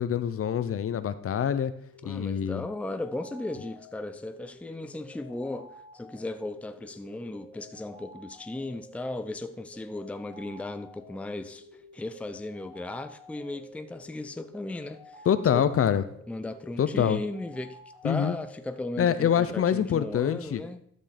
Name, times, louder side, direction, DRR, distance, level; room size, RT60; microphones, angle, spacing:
voice 1, 0.0-1.7 2.0-2.6 15.3-16.0 16.8-17.2 18.0-18.3 19.0-20.6, left 9 dB, 50° left, 0.7 m, -25 dB
sound 1, 1.9-19.2, left 2 dB, 55° right, 4.0 m, -51 dB
voice 2, 2.0-11.7 11.9-15.2 15.5-15.6 16.3-17.8 18.0-20.8, left 2 dB, 5° left, 0.5 m, -36 dB
12.0 x 5.4 x 4.2 m
cardioid pair, 90°, 30 cm